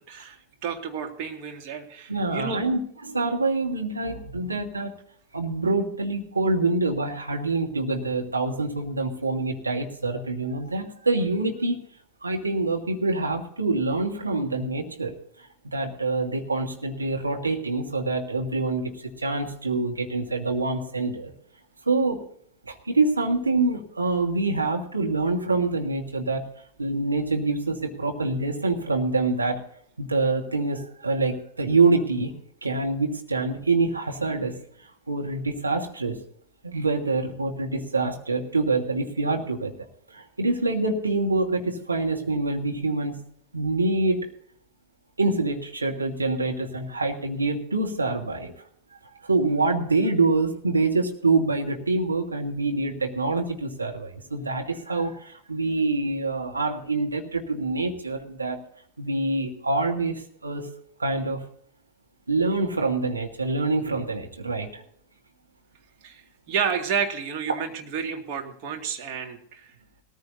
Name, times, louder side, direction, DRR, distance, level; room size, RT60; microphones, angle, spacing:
voice 1, 0.1-2.7 66.0-69.7, right 7 dB, 45° right, 3 dB, 2.2 m, -31 dB
voice 2, 2.1-2.8 3.0-4.9 5.3-11.8 12.2-15.1 15.6-21.3 21.8-22.2 22.6-26.4 26.8-29.6 30.0-32.3 32.6-36.2 36.6-39.7 40.1-43.2 43.5-44.3 45.2-48.5 49.2-58.6 59.0-60.7 61.0-61.4 62.3-64.8 67.5-67.6, right 3 dB, 80° right, 2 dB, 1.6 m, -26 dB
19.0 x 14.5 x 2.7 m, 0.64 s
figure-of-eight pair, 90°, 0 cm